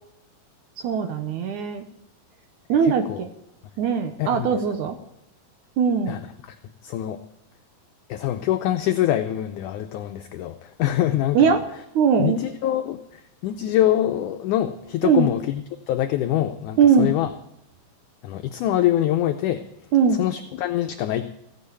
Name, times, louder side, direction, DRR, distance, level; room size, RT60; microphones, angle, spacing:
voice 1, 0.8-1.9 2.7-3.3 3.8-5.0 5.8-6.2 11.3-11.6 12.0-12.4 15.0-15.3 16.8-17.1 19.9-20.2, right 6 dB, 70° right, 7 dB, 2.1 m, -20 dB
voice 2, 2.8-3.2 4.2-4.5 6.1-6.2 6.8-7.2 8.1-11.6 12.2-15.6 15.9-17.3 18.2-19.6 20.2-21.3, left 12 dB, 75° left, 7 dB, 1.9 m, -24 dB
16.5 x 7.5 x 8.3 m, 0.83 s
omnidirectional pair, 4.1 m